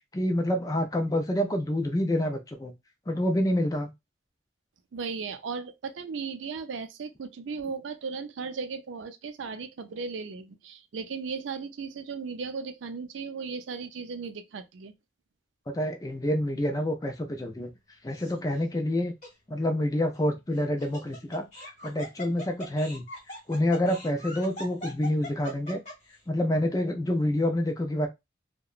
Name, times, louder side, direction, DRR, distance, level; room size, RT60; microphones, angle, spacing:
voice 1, 0.1-2.7 3.1-3.9 15.7-17.7 18.0-19.1 19.5-21.5 21.8-23.1 23.5-25.8 26.3-28.1, left 1 dB, 20° left, 0.4 m, -27 dB
voice 2, 4.9-14.9, right 5 dB, 85° right, 0.4 m, -36 dB
Laughter, 18.1-18.6 19.2-19.3 20.5-26.1, left 1 dB, 40° left, 1.0 m, -41 dB
2.8 x 2.1 x 2.3 m
head